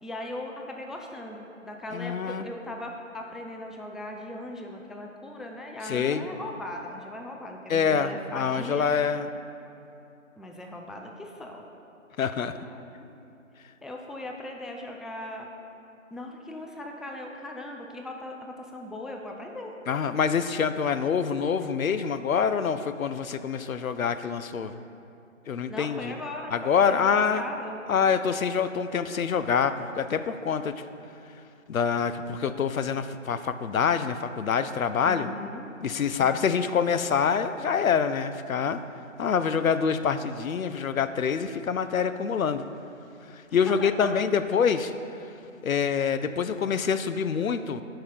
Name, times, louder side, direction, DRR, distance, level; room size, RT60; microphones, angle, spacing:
voice 1, 0.0-8.9 10.4-11.6 12.4-13.0 13.8-15.5 16.1-19.7 25.7-28.1 35.0-35.7 43.5-44.2, left 1 dB, ahead, 1 dB, 0.3 m, -39 dB
voice 2, 1.9-2.5 5.9-6.3 7.7-9.3 12.2-12.5 19.9-24.7 25.5-26.1 26.5-27.4 27.9-30.8 31.7-35.3 35.8-38.8 39.2-42.6 43.5-44.9 45.6-47.8, left 6 dB, 85° left, 11 dB, 0.5 m, -26 dB
6.9 x 5.6 x 5.1 m, 2.8 s
figure-of-eight pair, 170°, 40 cm